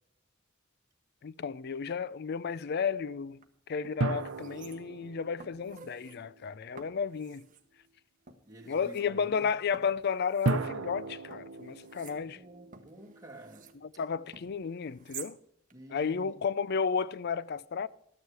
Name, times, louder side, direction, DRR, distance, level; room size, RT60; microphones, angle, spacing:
voice 1, 1.2-3.4 3.7-7.5 8.7-12.4 14.0-15.4 15.9-17.9, left 6 dB, 50° left, 0.4 m, -33 dB
sound 1, 3.3-3.4 3.8-5.1 5.4-6.2 6.8-7.7 8.3-9.0 9.7-11.0 11.3-13.8 14.3-15.4 15.7-15.8, right 7 dB, 40° right, 1.1 m, -51 dB
sound 2, 4.0-6.8 10.5-13.8, right 3 dB, 85° right, 0.7 m, -36 dB
voice 2, 8.4-9.5 12.1-13.7 15.7-16.4, right 1 dB, 15° right, 2.3 m, -50 dB
13.0 x 9.4 x 4.8 m
head